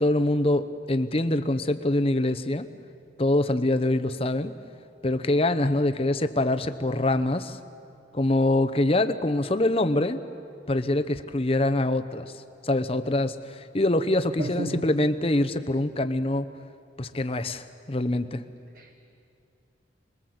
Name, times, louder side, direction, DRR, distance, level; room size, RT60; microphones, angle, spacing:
voice 1, 0.0-2.7 3.2-4.6 5.0-7.6 8.1-10.2 10.7-16.5 17.0-18.4, left 1 dB, 30° left, 9 dB, 0.9 m, -24 dB
voice 2, 14.4-14.8 18.8-18.9, right 2 dB, 50° right, 7 dB, 1.0 m, -32 dB
26.5 x 21.5 x 8.0 m, 2.5 s
head